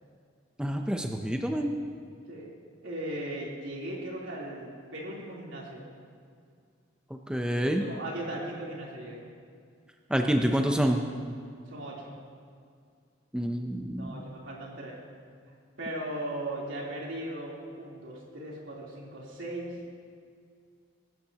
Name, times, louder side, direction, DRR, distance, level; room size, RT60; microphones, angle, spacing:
voice 1, 0.6-1.7 7.3-7.9 10.1-11.0 13.3-14.2, equal, 5° right, 3 dB, 0.6 m, -27 dB
voice 2, 2.8-5.8 7.8-9.2 11.7-12.1 14.0-15.0 15.8-19.8, right 1 dB, 75° right, -4 dB, 3.4 m, -38 dB
23.0 x 12.0 x 2.9 m, 2.2 s
head